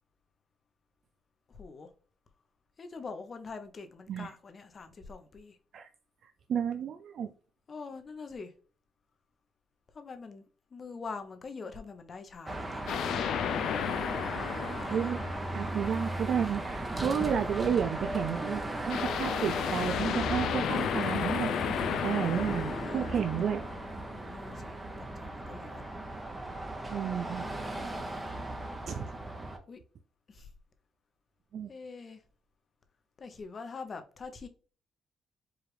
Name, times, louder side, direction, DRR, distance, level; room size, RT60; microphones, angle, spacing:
voice 1, 1.5-1.9 2.8-5.6 7.7-8.5 9.9-10.4 10.7-13.0 14.7-15.1 23.1-23.3 24.1-25.9 27.2-28.0 29.7-29.8 30.3-30.5 31.7-32.2 33.2-34.5, left 4 dB, 40° left, 0.8 m, -45 dB
voice 2, 6.5-7.3 14.9-15.2 15.5-21.5 22.0-23.6 26.9-27.5 28.9-29.0 31.5-31.7, right 8 dB, 60° right, 0.3 m, -31 dB
Car passing by / Traffic noise roadway noise / Engine, 12.5-29.6, right 1 dB, 15° right, 0.8 m, -37 dB
sound 1, 12.9-16.0 18.9-24.1, left 9 dB, 75° left, 0.4 m, -33 dB
4.8 x 2.4 x 3.2 m
cardioid pair, 90°, 0 cm